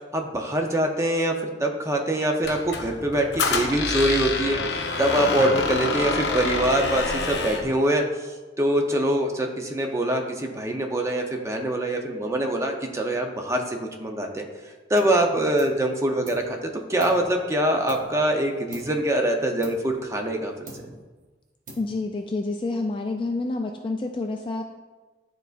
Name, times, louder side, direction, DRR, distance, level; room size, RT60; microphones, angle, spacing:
voice 1, 0.1-1.3 1.6-4.6 5.0-8.0 8.6-14.4 14.9-20.5, right 1 dB, 15° right, 2 dB, 0.6 m, -24 dB
Squeak, 2.4-7.7, left 3 dB, 70° left, 0.7 m, -27 dB
sound 1, 15.0-15.2 15.6-16.6 17.0-18.3 18.7-19.1 19.6-20.4 20.7-21.2 21.7-22.2, right 2 dB, 50° right, 1.2 m, -45 dB
voice 2, 21.8-24.6, left 3 dB, 30° left, 3 dB, 0.3 m, -28 dB
11.5 x 3.9 x 2.5 m, 1.3 s
head